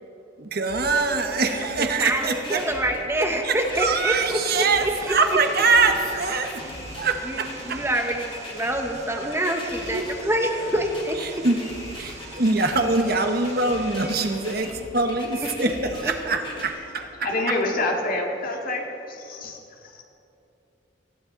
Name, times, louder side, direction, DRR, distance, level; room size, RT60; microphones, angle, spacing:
voice 1, 0.4-2.7 3.4-6.7 7.0-7.8 9.9-10.0 11.2-11.6 12.0-17.3, right 3 dB, 55° right, 5 dB, 1.2 m, -24 dB
sound 1, 0.7-16.7, left 2 dB, 25° left, 2.8 m, -40 dB
voice 2, 1.8-5.1 7.2-11.2 15.6-15.7 16.0-16.1, right 1 dB, 15° right, 3 dB, 1.1 m, -26 dB
Vehicle, 4.0-14.5, right 3 dB, 35° right, 1.4 m, -44 dB
voice 3, 17.0-19.6, left 2 dB, 50° left, 1 dB, 2.1 m, -27 dB
19.5 x 15.0 x 4.0 m, 2.8 s
head